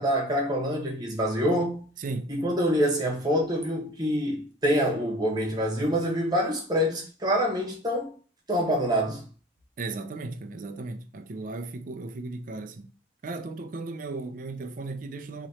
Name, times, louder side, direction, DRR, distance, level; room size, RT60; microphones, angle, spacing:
voice 1, 0.0-1.8 2.3-8.1 8.5-9.2, equal, 25° right, 1.2 m, -26 dB
voice 2, 2.0-2.3 9.8-12.8 13.2-15.5, right 3 dB, 50° right, 0.4 m, -36 dB
3.0 x 3.0 x 4.1 m
head